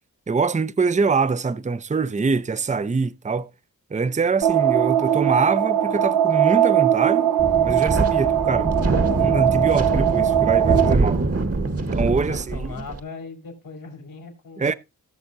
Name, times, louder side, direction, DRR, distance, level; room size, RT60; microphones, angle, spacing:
voice 1, 0.3-3.5 3.9-7.3 7.6-8.7 9.2-11.2 11.9-12.7 14.6-14.7, right 4 dB, 20° right, 0.6 m, -24 dB
sound 1, 4.4-10.9, right 10 dB, 70° right, 0.9 m, -20 dB
Wind, 7.4-13.0, right 2 dB, 45° right, 1.6 m, -24 dB
voice 2, 12.0-14.8, left 4 dB, 85° left, 3.4 m, -38 dB
18.0 x 6.4 x 2.7 m
cardioid pair, 50°, 34 cm